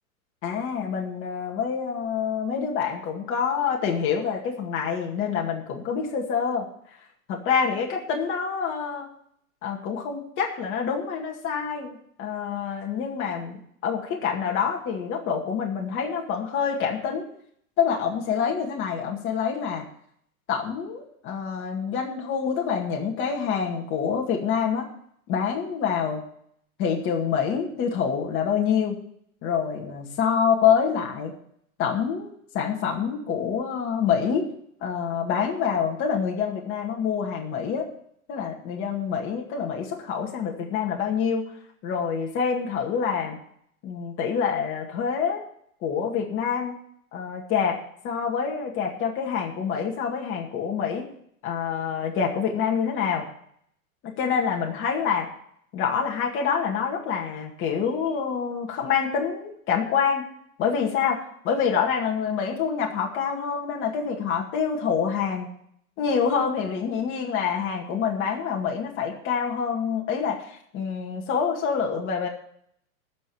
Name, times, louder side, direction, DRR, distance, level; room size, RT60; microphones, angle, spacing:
voice 1, 0.4-6.7 7.3-9.1 9.6-13.6 13.8-17.3 17.8-19.9 20.5-24.9 25.3-26.2 26.8-29.0 29.4-31.3 31.8-34.5 34.8-37.9 38.3-41.4 41.8-43.4 43.8-45.4 45.8-46.7 47.1-47.8 48.0-51.1 51.4-53.2 54.0-55.3 55.7-60.3 60.6-65.5 66.0-72.3, left 7 dB, 30° left, 0 dB, 2.2 m, -26 dB
13.5 x 5.4 x 9.3 m, 0.66 s
hypercardioid pair, 145°, 43 cm